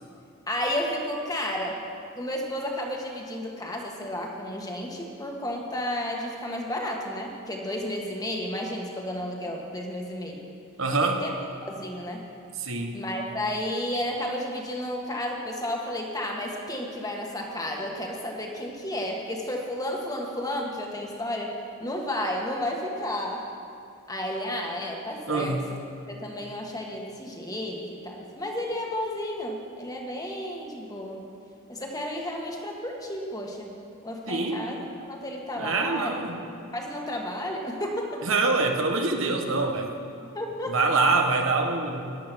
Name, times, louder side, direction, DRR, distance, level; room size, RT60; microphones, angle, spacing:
voice 1, 0.5-1.8 2.1-10.4 11.0-11.3 11.6-12.2 12.9-23.5 24.1-25.6 26.1-31.3 31.7-33.7 34.0-36.1 36.7-38.2 40.3-40.8, left 1 dB, 20° left, 0 dB, 1.6 m, -32 dB
voice 2, 10.8-11.2 12.6-12.9 25.3-25.6 34.3-34.7 35.6-36.4 38.2-39.9 40.7-42.1, right 3 dB, 70° right, 3 dB, 1.3 m, -25 dB
15.0 x 11.0 x 6.2 m, 2.4 s
head